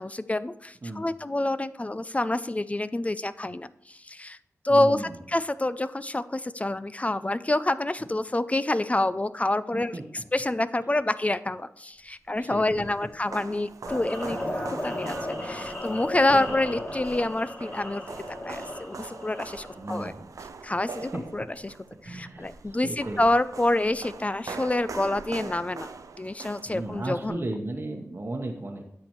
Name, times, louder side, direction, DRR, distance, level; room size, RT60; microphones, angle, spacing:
voice 1, 0.0-4.4 4.6-15.2 15.4-18.0 18.4-20.1 20.6-21.8 22.0-25.9 26.2-27.5, left 2 dB, 25° left, 14 dB, 0.3 m, -27 dB
voice 2, 4.7-5.1 9.7-10.0 12.4-12.8 16.3-16.4 19.8-20.3 21.1-21.2 22.0-23.2 26.7-28.9, right 2 dB, 45° right, 0 dB, 1.0 m, -35 dB
sound 1, 12.3-27.3, right 4 dB, 90° right, 0.5 m, -43 dB
sound 2, 13.9-19.8, left 1 dB, 45° left, 2.9 m, -35 dB
10.5 x 6.7 x 3.1 m, 0.75 s
wide cardioid pair, 60°, 6 cm